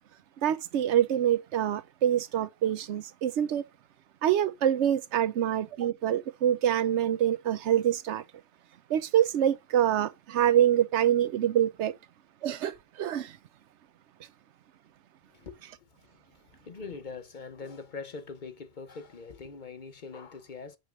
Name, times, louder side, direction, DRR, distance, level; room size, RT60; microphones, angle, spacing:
voice 1, 0.4-3.6 4.2-8.2 8.9-11.9 12.4-13.4, right 10 dB, 80° right, 0.9 m, -26 dB
voice 2, 15.3-20.8, left 4 dB, 45° left, 0.9 m, -43 dB
9.0 x 3.2 x 6.1 m
omnidirectional pair, 1.2 m